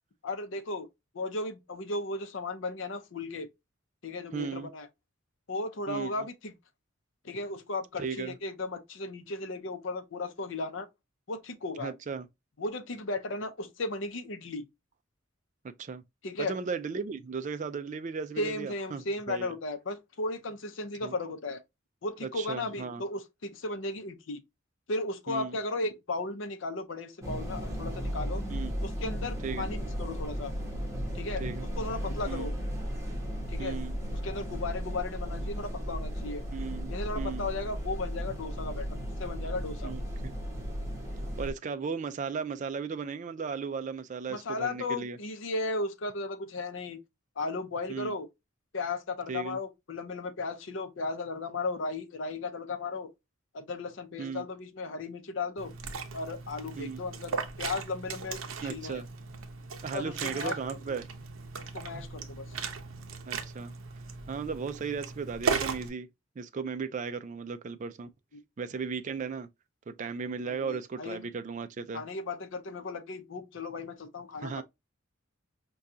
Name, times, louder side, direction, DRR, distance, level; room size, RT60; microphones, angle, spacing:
voice 1, 0.2-0.9 1.1-3.5 4.0-4.9 5.5-6.5 7.2-10.9 11.3-11.9 12.6-14.7 16.2-16.6 18.4-21.6 22.0-24.4 24.9-28.4 28.8-30.5 31.1-31.4 31.8-32.6 33.5-33.8 34.1-36.4 36.9-39.9 44.3-47.0 47.4-48.3 48.7-53.1 53.5-55.7 56.1-59.0 59.9-60.5 60.9-61.0 61.7-62.6 68.3-68.4 70.4-71.3 71.9-74.6, left 2 dB, 65° left, 0.6 m, -35 dB
voice 2, 4.3-4.7 5.9-6.1 8.0-8.3 11.8-12.3 15.6-16.0 16.4-19.5 21.0-21.1 22.2-23.0 25.3-25.6 28.5-28.7 29.4-29.7 31.4-31.7 32.3-32.5 33.6-34.0 36.5-37.5 39.8-40.3 41.4-45.2 47.9-48.1 49.3-49.6 54.2-54.4 56.8-57.0 58.6-59.1 59.8-61.0 63.3-63.7 64.3-66.1 66.4-68.1 68.6-69.5 69.9-72.0 74.4-74.6, right 5 dB, 35° right, 0.3 m, -36 dB
sound 1, 27.2-41.5, equal, 15° right, 1.1 m, -35 dB
Liquid, 55.6-65.9, right 5 dB, 85° right, 0.6 m, -37 dB
4.8 x 2.3 x 2.6 m
head